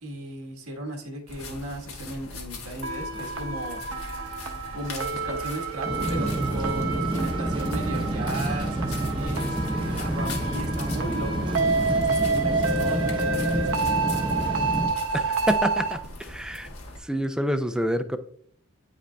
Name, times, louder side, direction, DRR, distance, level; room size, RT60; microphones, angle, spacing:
voice 1, 0.0-4.3 4.7-14.2, right 1 dB, 80° right, 1 dB, 1.4 m, -36 dB
sound 1, 1.3-17.0, left 2 dB, 70° left, 1.4 m, -41 dB
sound 2, 2.8-15.9, right 4 dB, 65° right, 0.9 m, -29 dB
sound 3, 5.8-14.9, right 1 dB, 20° right, 0.7 m, -28 dB
voice 2, 15.1-16.7 17.0-18.2, equal, 5° right, 10 dB, 0.3 m, -27 dB
9.4 x 5.0 x 2.2 m, 0.63 s
head